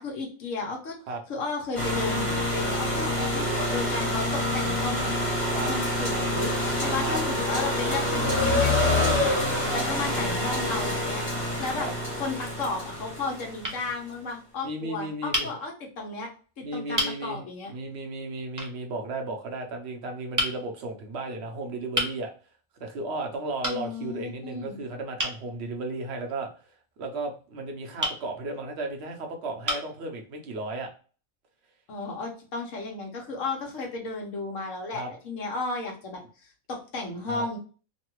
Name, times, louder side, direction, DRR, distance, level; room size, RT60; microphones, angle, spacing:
voice 1, 0.0-1.0 1.3-5.1 5.7-11.9 12.2-16.3 16.6-17.7 23.6-24.8 31.9-37.6, left 3 dB, 65° left, 1 dB, 1.2 m, -34 dB
sound 1, 1.7-13.8, left 1 dB, 35° left, 1.6 m, -27 dB
sound 2, 13.6-13.8 15.3-15.5 16.4-16.5 16.9-17.2 18.6-18.8 20.4-20.6 21.9-22.2 23.6-23.8 25.2-25.4 28.0-28.2 29.0-29.1 29.6-29.9, equal, 25° right, 0.4 m, -29 dB
voice 2, 14.6-15.5 16.6-17.4 17.7-22.3 22.8-26.5 27.0-30.9 34.9-35.1 37.3-37.4, right 2 dB, 55° right, 3 dB, 0.9 m, -34 dB
3.1 x 2.3 x 3.0 m, 0.38 s
omnidirectional pair, 1.4 m